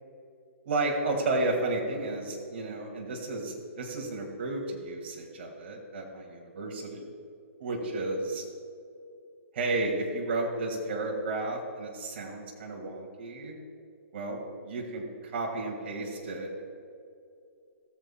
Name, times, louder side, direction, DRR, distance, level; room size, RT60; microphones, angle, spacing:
voice 1, 0.7-7.0 7.6-8.4 9.5-13.6 14.1-16.6, right 2 dB, 50° right, 0 dB, 1.9 m, -32 dB
19.0 x 7.3 x 2.2 m, 2.4 s
hypercardioid pair, 160°, 8 cm